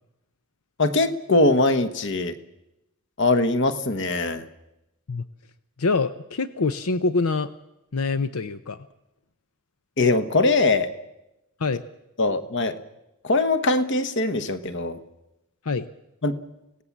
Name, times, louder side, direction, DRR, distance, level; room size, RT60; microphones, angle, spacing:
voice 1, 0.8-2.3 3.2-4.4 10.0-10.9 12.2-12.8 13.2-15.0 16.2-16.4, left 2 dB, 55° left, 11 dB, 1.3 m, -21 dB
voice 2, 5.8-7.5 7.9-8.8 11.6-11.8 15.6-15.9, left 3 dB, 80° left, 12 dB, 0.7 m, -25 dB
25.0 x 17.0 x 7.3 m, 0.94 s
head